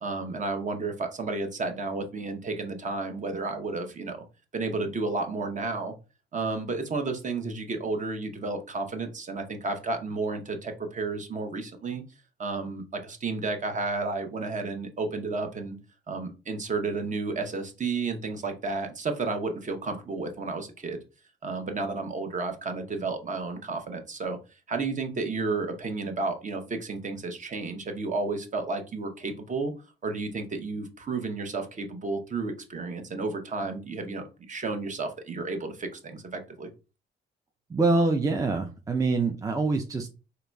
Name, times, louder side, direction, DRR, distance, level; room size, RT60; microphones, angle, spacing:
voice 1, 0.0-4.2 4.5-5.9 6.3-12.0 12.4-15.8 16.1-21.0 21.4-24.4 24.7-29.7 30.0-36.7, right 3 dB, 40° right, 6 dB, 0.8 m, -32 dB
voice 2, 37.7-40.1, right 3 dB, 15° right, 3 dB, 0.4 m, -25 dB
3.8 x 3.0 x 2.2 m, 0.31 s
cardioid pair, 90°, 20 cm